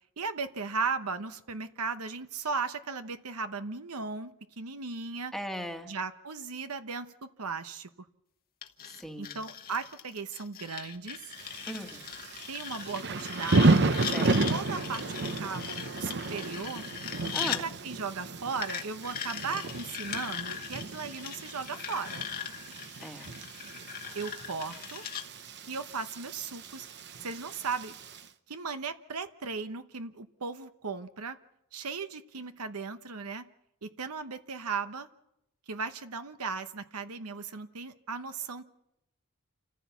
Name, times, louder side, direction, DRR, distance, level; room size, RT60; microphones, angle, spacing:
voice 1, 0.2-5.3 5.9-7.9 9.2-11.2 12.5-13.8 14.1-16.9 17.6-22.3 24.1-25.0 25.7-26.9 27.2-27.9 28.5-31.4 31.7-33.5 33.8-35.1 35.7-38.6, right 4 dB, 75° right, 10 dB, 1.0 m, -36 dB
voice 2, 5.3-5.9 8.8-9.4 11.7-12.1 14.1-14.4 17.3-17.7 23.0-23.3, equal, ahead, 4 dB, 1.5 m, -38 dB
sound 1, 8.6-17.6 18.6-25.2, left 9 dB, 40° left, 1.2 m, -39 dB
Thunder / Rain, 11.4-28.2, right 3 dB, 50° right, 0.9 m, -32 dB
28.5 x 15.0 x 7.0 m, 0.84 s
head